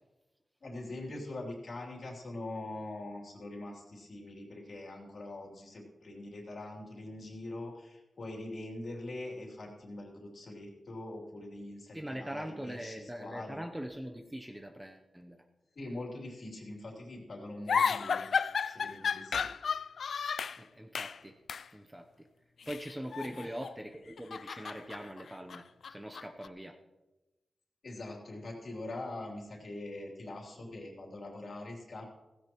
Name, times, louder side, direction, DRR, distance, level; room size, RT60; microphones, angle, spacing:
voice 1, 0.6-13.6 15.7-18.3 18.6-19.5 23.2-23.6 27.8-32.0, left 2 dB, 50° left, -1 dB, 3.1 m, -43 dB
voice 2, 11.9-15.4 20.6-21.4 21.7-22.3 22.7-26.8, equal, 10° right, 5 dB, 0.8 m, -42 dB
sound 1, 17.7-20.6 20.9-21.2 21.5-21.7 22.6-23.8 24.1-26.5, left 6 dB, 75° left, 0.3 m, -33 dB
16.5 x 16.0 x 3.0 m, 1.0 s
wide cardioid pair, 170°, 0 cm